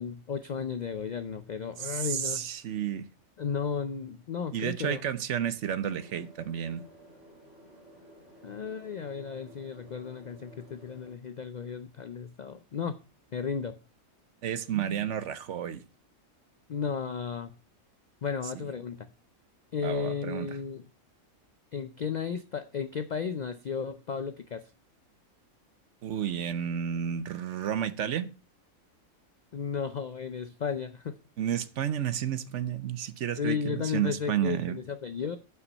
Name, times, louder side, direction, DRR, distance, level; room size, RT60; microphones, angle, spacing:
voice 1, 0.0-2.5 3.4-5.0 8.4-13.0 13.3-13.8 16.7-17.5 18.2-19.1 19.7-20.9 21.7-24.7 29.5-31.1 33.4-35.4, left 6 dB, 80° left, 0.4 m, -34 dB
voice 2, 1.8-3.0 4.5-6.8 14.4-15.8 19.8-20.5 26.0-28.3 31.4-34.8, right 9 dB, 65° right, 1.0 m, -31 dB
sound 1, 5.9-11.1, right 1 dB, 15° right, 3.6 m, -54 dB
8.0 x 5.8 x 5.2 m
omnidirectional pair, 1.4 m